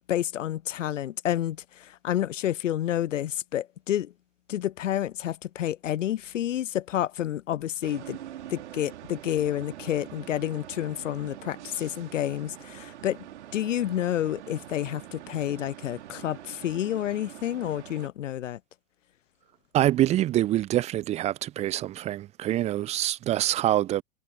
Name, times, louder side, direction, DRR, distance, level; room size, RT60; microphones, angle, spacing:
voice 1, 0.1-4.1 4.5-8.2 8.5-13.3 13.5-18.6, left 12 dB, 65° left, 0.5 m, -29 dB
sound 1, 7.8-18.1, right 12 dB, 55° right, 2.6 m, -44 dB
voice 2, 19.7-24.0, right 13 dB, 15° right, 0.6 m, -25 dB
figure-of-eight pair, 100°, 41 cm